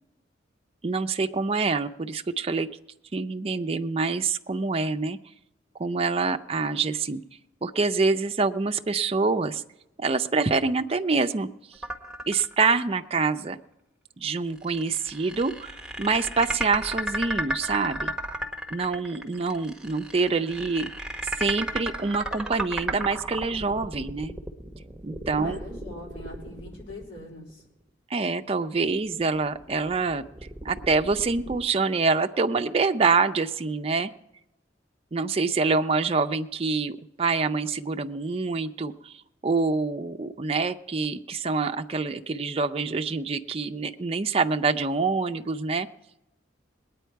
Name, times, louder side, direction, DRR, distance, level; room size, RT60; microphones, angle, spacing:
voice 1, 0.8-2.7 3.1-5.2 5.8-7.2 7.6-9.6 10.0-11.8 12.3-13.6 14.2-18.1 18.7-20.9 21.4-24.4 25.0-25.6 28.1-30.2 30.6-34.1 35.1-45.9, right 4 dB, 30° right, 6 dB, 0.5 m, -26 dB
sound 1, 11.8-12.9 13.3-13.4 14.6-27.6 28.8-31.6, right 1 dB, 5° right, 1.0 m, -34 dB
voice 2, 25.3-27.6, left 2 dB, 80° left, -2 dB, 3.6 m, -43 dB
20.0 x 9.2 x 4.6 m, 0.90 s
head